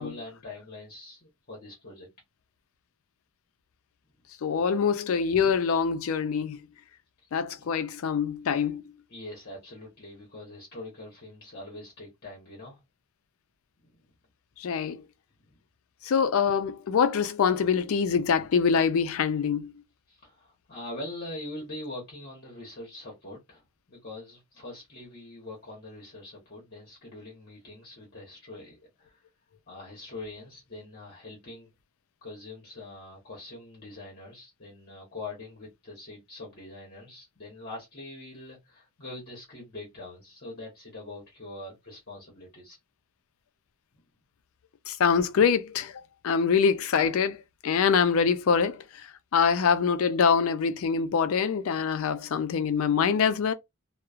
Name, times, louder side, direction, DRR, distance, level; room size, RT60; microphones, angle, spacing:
voice 1, 0.0-2.1 7.2-7.3 7.6-7.7 9.1-12.8 13.8-13.9 15.5-15.6 20.1-23.6 23.9-29.2 29.7-31.7 32.2-42.8, left 2 dB, 45° left, 0.9 m, -43 dB
voice 2, 4.4-6.6 7.3-8.8 14.6-15.0 16.0-19.7 44.9-49.1 49.3-53.5, left 6 dB, 70° left, 0.4 m, -24 dB
3.0 x 2.0 x 2.3 m
head